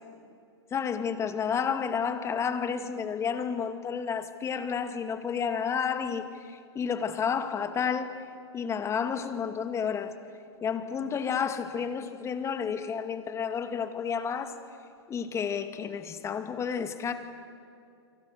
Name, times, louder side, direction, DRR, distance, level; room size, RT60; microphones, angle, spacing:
voice 1, 0.7-8.1 8.5-10.1 10.6-14.6 15.1-17.1, left 7 dB, 20° left, 8 dB, 2.2 m, -31 dB
29.5 x 26.5 x 6.7 m, 2.5 s
hypercardioid pair, 125°, 14 cm